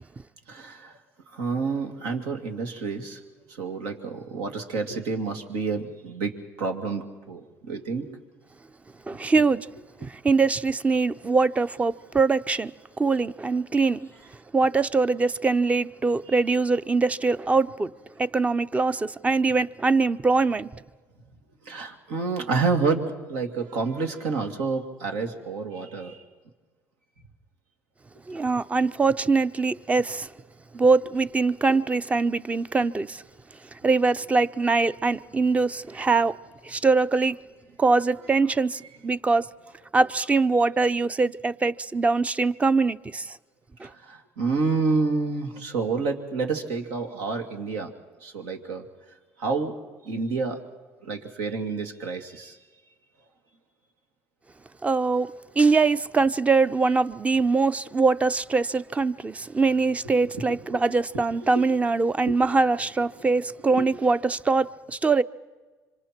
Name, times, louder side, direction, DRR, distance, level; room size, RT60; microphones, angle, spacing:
voice 1, 0.5-1.0 1.3-3.2 3.5-6.3 6.6-8.2 9.4-9.5 21.6-26.2 43.8-47.9 48.2-48.9 49.4-49.8 50.0-50.6 51.0-52.6 60.3-60.8 62.5-62.6 63.7-63.8, right 4 dB, 80° right, 2.5 m, -29 dB
voice 2, 9.1-9.7 10.0-12.7 13.0-14.1 14.5-17.9 18.2-20.7 28.3-30.3 30.7-33.2 33.8-36.3 36.6-37.4 37.8-39.5 39.9-43.3 54.8-65.2, right 4 dB, 20° right, 0.6 m, -23 dB
26.5 x 25.0 x 4.5 m
supercardioid pair, 85°, 6 cm